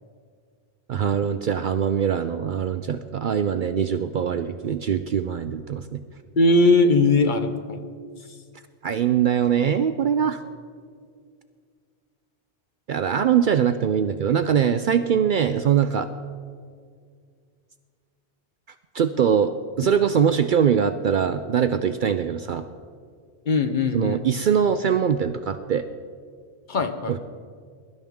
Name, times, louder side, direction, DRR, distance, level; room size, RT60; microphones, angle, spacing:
voice 1, 0.9-6.0 8.8-10.4 12.9-16.1 18.9-22.6 23.9-25.9 27.1-27.2, right 8 dB, 60° right, 10 dB, 0.6 m, -22 dB
voice 2, 6.4-7.9 23.5-24.3 26.7-27.2, left 2 dB, 50° left, 7 dB, 0.9 m, -20 dB
22.0 x 11.5 x 3.6 m, 2.1 s
omnidirectional pair, 1.1 m